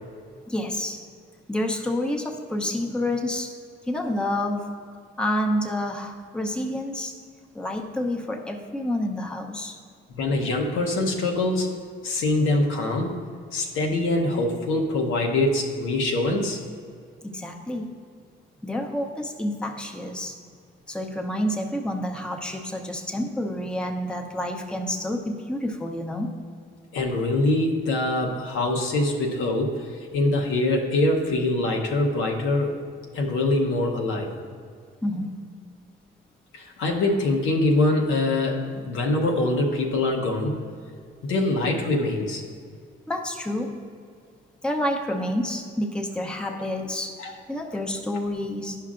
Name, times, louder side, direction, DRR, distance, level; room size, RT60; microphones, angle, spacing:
voice 1, 0.5-1.0 1.5-3.6 3.9-4.7 5.2-7.1 7.5-9.8 17.2-17.9 18.6-20.3 20.9-26.3 35.0-35.4 43.1-43.8 44.6-47.2 47.5-48.8, left 1 dB, 5° left, 1 dB, 0.7 m, -28 dB
voice 2, 10.1-11.7 12.0-13.2 13.5-16.6 26.9-32.7 33.1-34.3 36.5-40.6 41.3-42.4 47.2-47.3, left 2 dB, 90° left, 0 dB, 0.9 m, -24 dB
11.0 x 5.7 x 2.5 m, 2.1 s
cardioid pair, 90°, 20 cm